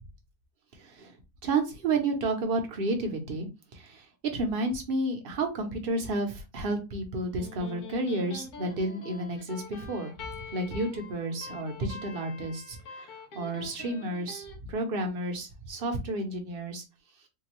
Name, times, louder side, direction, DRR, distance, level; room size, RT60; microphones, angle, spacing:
voice 1, 0.8-1.1 1.4-16.8, right 2 dB, 45° right, 4 dB, 0.8 m, -31 dB
Electric guitar, 7.2-14.6, left 4 dB, 85° left, 1.5 m, -45 dB
3.6 x 2.4 x 3.0 m, 0.27 s
omnidirectional pair, 1.6 m